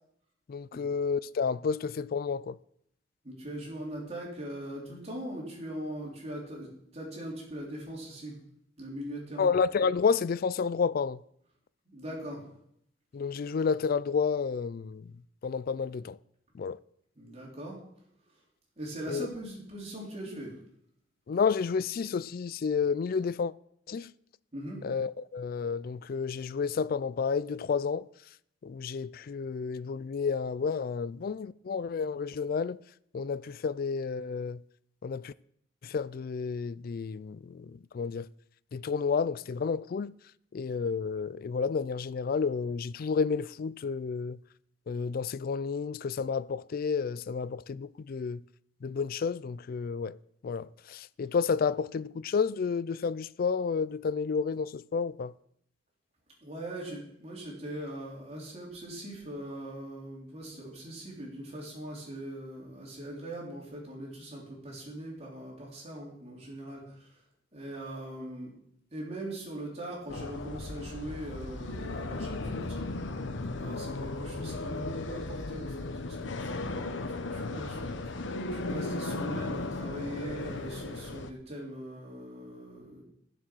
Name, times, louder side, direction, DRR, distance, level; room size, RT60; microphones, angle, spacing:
voice 1, 0.5-2.6 9.4-11.2 13.1-15.1 15.4-16.2 16.5-16.8 19.1-19.3 21.3-23.5 23.9-24.1 24.8-28.1 28.6-32.8 33.1-34.6 35.0-35.3 35.8-38.3 38.7-40.1 40.5-44.4 44.9-48.4 48.8-50.2 50.4-55.3, left 5 dB, 50° left, 0.3 m, -30 dB
voice 2, 3.2-6.7 6.9-8.4 8.8-9.5 11.9-12.4 17.2-17.8 18.8-20.5 24.5-24.8 56.4-67.2 67.5-68.5 68.9-72.8 73.6-78.0 78.5-83.0, right 1 dB, 35° right, 4.1 m, -41 dB
sound 1, 70.1-81.3, left 2 dB, 75° left, 0.9 m, -36 dB
13.0 x 7.6 x 6.2 m
head